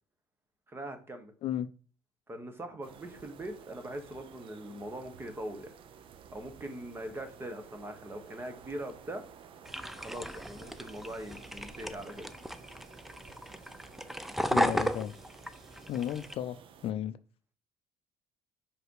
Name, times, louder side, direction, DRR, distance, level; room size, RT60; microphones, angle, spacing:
voice 1, 0.7-1.3 2.3-5.7 6.3-9.2 9.9-12.3, right 1 dB, 20° right, 1.4 m, -41 dB
sound 1, 2.8-16.9, right 7 dB, 50° right, 0.7 m, -54 dB
sound 2, 9.7-16.3, equal, ahead, 0.5 m, -35 dB
voice 2, 14.5-15.1 15.9-16.6 16.8-17.2, left 10 dB, 55° left, 0.5 m, -33 dB
5.3 x 4.9 x 4.8 m
cardioid pair, 110°, 11 cm